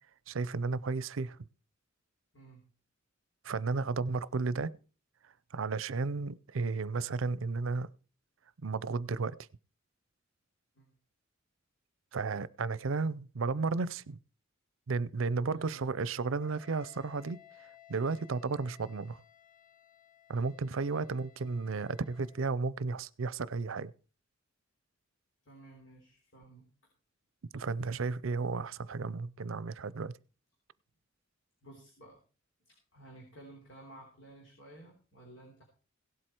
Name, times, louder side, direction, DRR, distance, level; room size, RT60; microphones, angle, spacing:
voice 1, 0.3-1.4 3.4-4.7 5.5-7.9 8.6-9.3 12.1-14.2 14.9-17.4 17.9-19.2 20.3-23.9 27.5-30.1, right 4 dB, 75° right, 0.6 m, -33 dB
voice 2, 15.5-15.9 20.9-21.1 25.4-26.7 31.6-32.2 32.7-35.6, right 2 dB, 65° left, 3.7 m, -54 dB
Wind instrument woodwind instrument, 16.3-22.5, left 11 dB, 40° left, 0.8 m, -59 dB
17.0 x 7.9 x 4.4 m
head